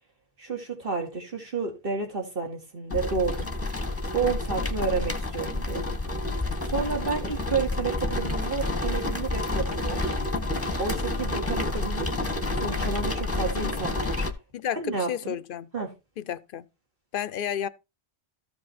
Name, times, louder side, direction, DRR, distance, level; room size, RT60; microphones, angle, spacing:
voice 1, 0.4-3.5 4.1-5.8 6.6-10.1 10.8-12.1 12.6-14.3 14.7-15.4 15.7-15.9, right 5 dB, 55° right, 2.6 m, -30 dB
sound 1, 2.9-14.3, left 2 dB, 15° left, 1.0 m, -29 dB
voice 2, 14.5-15.7 16.2-16.7 17.1-17.7, left 9 dB, 60° left, 0.7 m, -31 dB
13.5 x 5.3 x 4.2 m
omnidirectional pair, 1.1 m